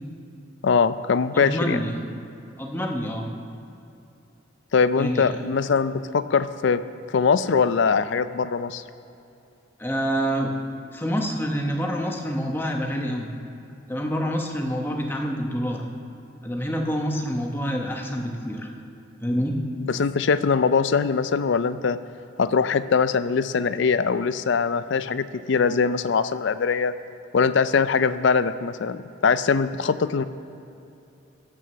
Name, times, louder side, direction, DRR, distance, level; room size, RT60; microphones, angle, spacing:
voice 1, 0.6-1.8 4.7-6.8 7.1-8.8 19.8-22.0 22.4-26.9 27.3-30.2, left 5 dB, 60° left, 13 dB, 0.4 m, -22 dB
voice 2, 1.3-1.9 2.6-3.3 5.0-5.3 9.8-10.5 10.9-13.3 13.9-15.8 16.4-18.7 19.2-19.5, equal, 10° left, 1 dB, 0.9 m, -27 dB
16.5 x 6.3 x 6.8 m, 2.8 s
head